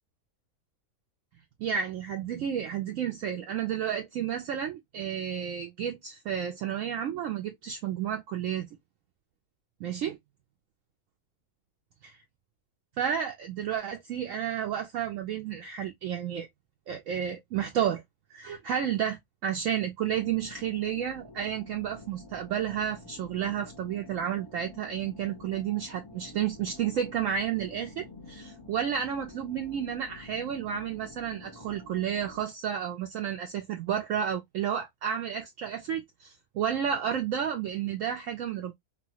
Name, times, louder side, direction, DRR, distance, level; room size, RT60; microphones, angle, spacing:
voice 1, 1.6-8.8 9.8-10.2 12.0-12.2 13.0-16.5 16.9-18.0 18.3-38.7, right 9 dB, 70° right, 0.9 m, -31 dB
sound 1, 20.1-32.4, left 2 dB, 30° left, 0.5 m, -49 dB
3.0 x 2.2 x 2.7 m
omnidirectional pair, 1.6 m